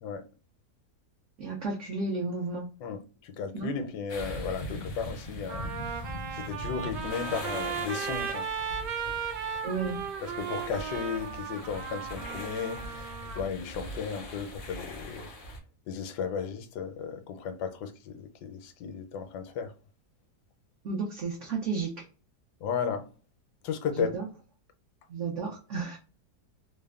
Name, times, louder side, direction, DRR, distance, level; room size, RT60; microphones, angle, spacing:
voice 1, 1.4-2.7 3.5-3.7 9.6-10.0 20.8-22.1 23.9-24.3 25.1-26.0, right 4 dB, 65° right, 0.7 m, -32 dB
voice 2, 2.8-6.0 6.3-8.5 10.2-13.1 13.4-15.2 15.9-19.7 22.6-23.1 23.6-24.2, left 6 dB, 80° left, 1.2 m, -35 dB
sound 1, 4.1-15.6, left 1 dB, 55° left, 0.6 m, -41 dB
Trumpet, 4.8-4.9 5.5-13.4, right 7 dB, 90° right, 1.2 m, -36 dB
3.2 x 2.0 x 2.3 m
omnidirectional pair, 1.8 m